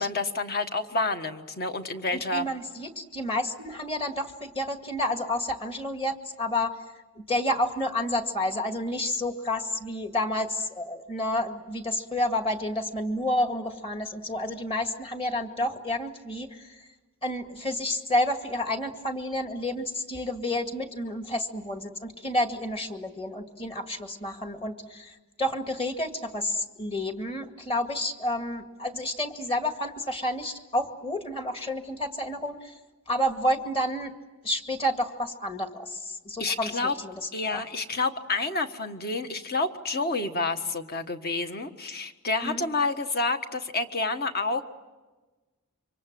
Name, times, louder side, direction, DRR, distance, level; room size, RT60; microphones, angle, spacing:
voice 1, 0.0-2.5 36.4-36.9 37.3-44.6, left 3 dB, 45° left, 7 dB, 1.5 m, -29 dB
voice 2, 2.1-6.8 7.2-16.8 17.2-32.7 33.1-34.1 34.4-37.6 42.4-42.6, left 1 dB, 25° left, 5 dB, 2.1 m, -30 dB
27.0 x 25.0 x 7.6 m, 1.2 s
head